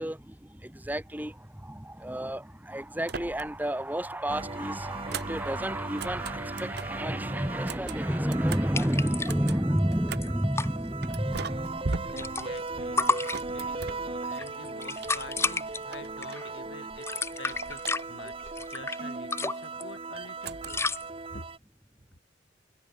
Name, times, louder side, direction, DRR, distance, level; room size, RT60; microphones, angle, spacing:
voice 1, 0.0-12.2 13.1-13.4, equal, 10° right, 1.5 m, -31 dB
sound 1, 3.1-3.8 4.1-7.0 7.5-10.4 11.0-14.6 15.0-16.7 17.0-18.4 20.4-21.1, right 4 dB, 55° right, 0.9 m, -40 dB
sound 2, 4.3-21.6, right 3 dB, 30° right, 1.4 m, -38 dB
sound 3, 8.7-9.5 9.8-9.9 10.1-10.7 11.7-12.7 13.0-13.8 14.3-15.8 16.2-16.5 16.9-19.0 19.3-19.8 20.7-21.0, left 3 dB, 15° left, 1.2 m, -31 dB
voice 2, 12.1-13.1 13.5-17.8 18.1-20.9 21.3-21.5, left 3 dB, 70° left, 3.5 m, -47 dB
head